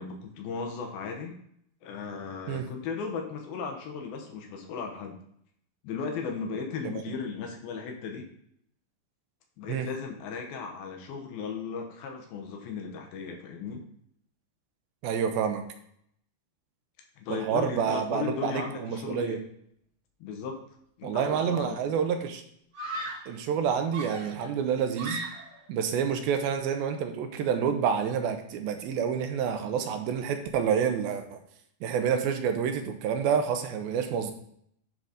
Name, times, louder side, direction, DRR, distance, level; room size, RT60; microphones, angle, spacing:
voice 1, 0.0-1.4 1.8-5.2 5.8-8.3 9.6-13.8 17.2-19.4 20.2-20.6 21.0-21.8, left 5 dB, 80° left, 3 dB, 2.9 m, -36 dB
voice 2, 15.0-15.6 17.3-19.4 21.0-22.4 23.3-25.2 25.7-31.4 31.8-34.3, right 7 dB, 80° right, 6 dB, 2.6 m, -28 dB
Screaming, 22.7-23.4 23.9-25.7, right 2 dB, 50° right, 1.3 m, -38 dB
10.0 x 4.0 x 5.0 m, 0.69 s
omnidirectional pair, 4.2 m